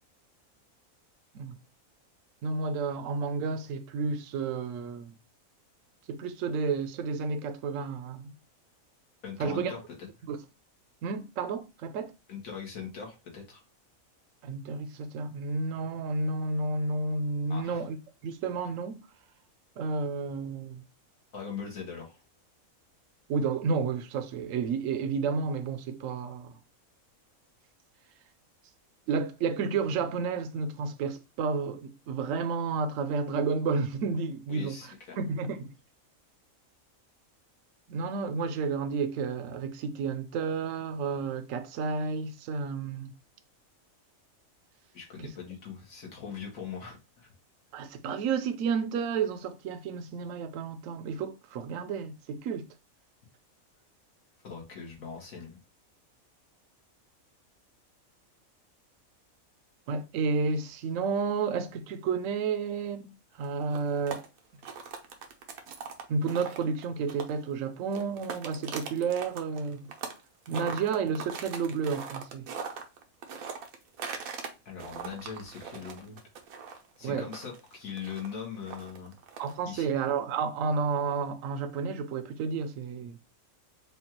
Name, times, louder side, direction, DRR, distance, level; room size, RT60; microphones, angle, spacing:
voice 1, 2.4-5.1 6.1-8.3 9.4-9.7 10.3-10.4 11.0-12.1 14.4-18.0 18.2-19.0 19.8-20.8 23.3-26.6 29.1-35.7 37.9-43.1 45.2-45.3 47.7-52.6 59.9-63.1 63.4-64.2 66.1-69.9 70.5-72.5 77.0-77.3 79.4-83.2, right 5 dB, 70° right, 0.9 m, -31 dB
voice 2, 9.2-9.8 12.3-13.6 17.5-17.8 21.3-22.2 34.5-35.2 44.9-47.3 54.4-55.6 74.6-76.2 77.0-79.1 79.7-79.9, left 7 dB, 75° left, 1.6 m, -41 dB
sound 1, 63.4-67.5 67.8-70.2 70.5-74.5 74.8-79.6, right 6 dB, 90° right, 1.2 m, -40 dB
5.1 x 2.3 x 2.8 m
omnidirectional pair, 1.4 m